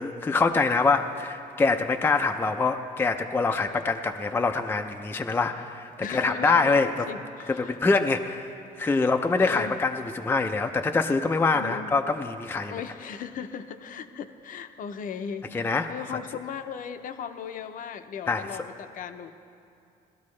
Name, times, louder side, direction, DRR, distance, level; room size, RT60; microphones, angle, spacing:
voice 1, 0.0-7.1 7.5-8.5 8.8-12.7 15.5-15.9 18.3-18.4, left 4 dB, 15° left, 6 dB, 0.4 m, -25 dB
voice 2, 6.0-7.8 8.9-9.7 11.5-11.9 12.7-19.3, left 7 dB, 55° left, 9 dB, 0.6 m, -37 dB
18.0 x 12.5 x 3.2 m, 2.6 s
cardioid pair, 110°, 17 cm